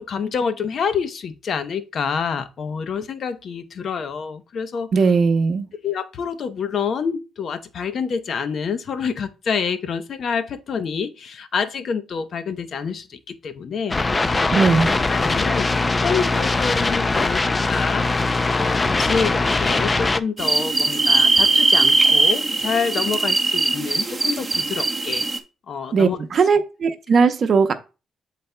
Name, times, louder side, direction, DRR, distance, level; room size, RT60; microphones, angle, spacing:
voice 1, 0.0-4.9 5.8-14.7 15.1-18.1 18.5-25.3 25.7-26.2, left 6 dB, 55° left, 0.8 m, -27 dB
voice 2, 4.9-5.7 14.5-14.9 25.9-27.7, right 5 dB, 50° right, 0.8 m, -18 dB
sound 1, 13.9-20.2, left 3 dB, 25° left, 0.4 m, -21 dB
sound 2, 20.4-25.4, right 3 dB, 20° right, 0.9 m, -19 dB
11.5 x 4.1 x 2.2 m
cardioid pair, 90°, 0 cm